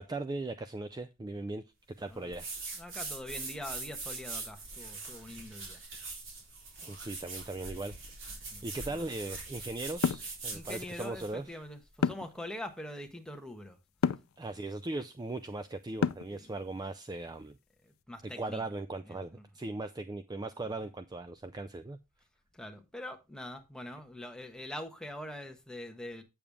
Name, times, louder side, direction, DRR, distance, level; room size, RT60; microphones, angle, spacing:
voice 1, 0.0-1.6 2.0-2.6 6.8-8.3 8.6-11.4 14.4-17.6 18.4-22.0, right 2 dB, 20° right, 0.4 m, -39 dB
sound 1, 2.3-11.4, right 3 dB, 65° right, 3.7 m, -42 dB
voice 2, 2.8-5.8 8.5-8.8 10.5-13.8 16.3-16.5 17.8-18.6 19.0-19.4 20.8-20.9 22.5-26.2, left 1 dB, 5° left, 1.2 m, -44 dB
sound 2, 10.0-10.3 12.0-12.4 14.0-14.3 16.0-16.4, left 6 dB, 80° left, 0.4 m, -28 dB
8.7 x 6.9 x 3.5 m
head